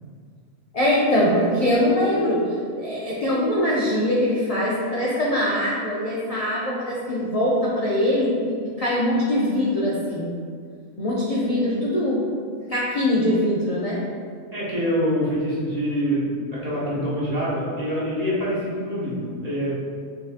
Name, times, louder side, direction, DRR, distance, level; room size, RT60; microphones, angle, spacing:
voice 1, 0.7-2.4 2.7-10.3 11.0-12.2 12.7-14.0, left 1 dB, 50° left, -6 dB, 0.4 m, -22 dB
voice 2, 14.5-19.8, equal, 35° right, -8 dB, 0.9 m, -25 dB
5.4 x 2.6 x 2.4 m, 2.1 s
omnidirectional pair, 1.3 m